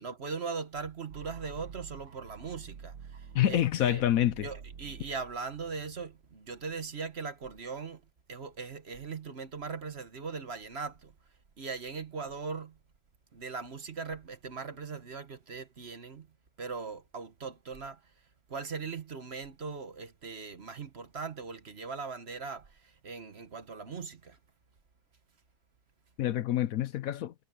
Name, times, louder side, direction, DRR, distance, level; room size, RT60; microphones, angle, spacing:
voice 1, 0.0-4.0 4.4-8.0 8.3-11.1 11.6-12.8 13.3-16.3 16.6-18.0 18.5-24.4, right 5 dB, 45° right, 1.3 m, -40 dB
sound 1, 1.1-7.0, right 6 dB, 75° right, 1.7 m, -49 dB
voice 2, 3.3-4.5 26.2-27.3, left 12 dB, 70° left, 1.0 m, -27 dB
omnidirectional pair, 1.7 m